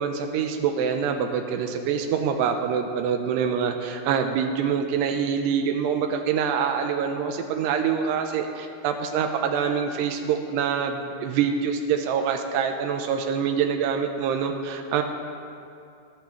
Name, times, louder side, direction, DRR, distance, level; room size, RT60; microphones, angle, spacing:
voice 1, 0.0-15.0, right 7 dB, 85° right, 5 dB, 2.7 m, -25 dB
21.5 x 11.0 x 3.2 m, 2.5 s
omnidirectional pair, 4.9 m